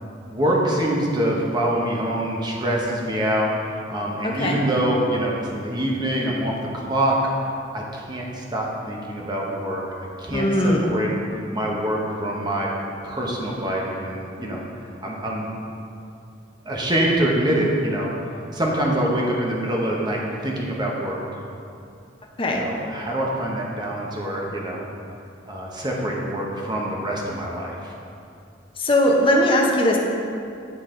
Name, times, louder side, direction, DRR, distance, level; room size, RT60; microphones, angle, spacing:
voice 1, 0.3-7.2 7.7-9.8 10.2-11.1 11.5-12.7 13.0-14.6 15.0-15.5 16.7-18.1 18.5-21.2 22.6-24.9 25.4-27.9, right 1 dB, 20° right, -2 dB, 0.9 m, -25 dB
voice 2, 4.2-4.6 10.3-10.9 22.4-22.6 28.8-30.0, left 1 dB, 30° left, -1 dB, 0.8 m, -19 dB
10.0 x 4.1 x 3.8 m, 2.6 s
head